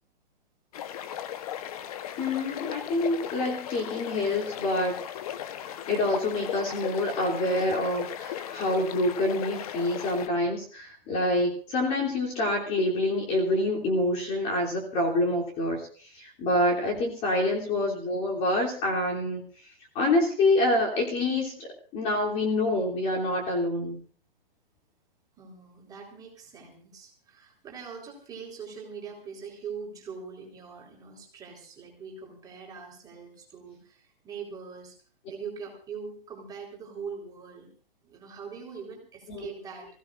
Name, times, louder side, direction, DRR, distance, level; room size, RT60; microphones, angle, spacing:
sound 1, 0.7-10.3, left 10 dB, 40° left, 1.1 m, -37 dB
voice 1, 2.2-4.9 5.9-15.9 16.1-19.4 19.9-24.0 39.3-39.5, left 1 dB, 25° left, -1 dB, 3.2 m, -27 dB
voice 2, 25.4-35.0 35.3-37.7 38.0-39.9, right 6 dB, 15° right, -1 dB, 4.2 m, -42 dB
26.5 x 16.5 x 2.6 m, 0.41 s
hypercardioid pair, 160°, 29 cm